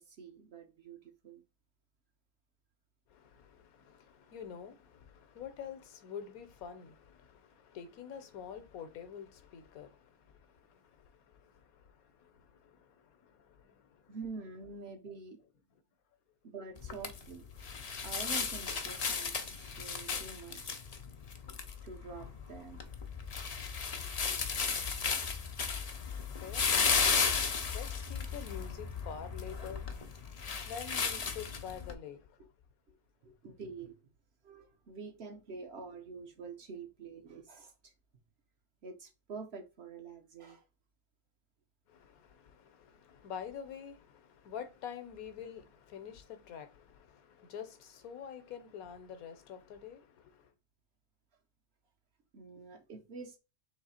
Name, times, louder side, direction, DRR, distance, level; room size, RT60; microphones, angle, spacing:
voice 1, 0.0-1.4 14.1-15.4 16.4-17.4 18.0-20.8 21.8-22.9 25.3-25.5 32.4-32.5 32.9-33.0 33.2-34.1 34.4-37.9 38.8-40.6 52.3-53.4, right 4 dB, 55° right, 0.9 m, -47 dB
voice 2, 3.1-14.2 24.0-24.4 26.0-27.2 27.7-32.4 41.9-50.5, left 8 dB, 75° left, 1.2 m, -48 dB
sound 1, 16.8-31.9, left 5 dB, 60° left, 0.4 m, -35 dB
4.0 x 3.2 x 4.1 m
omnidirectional pair, 1.5 m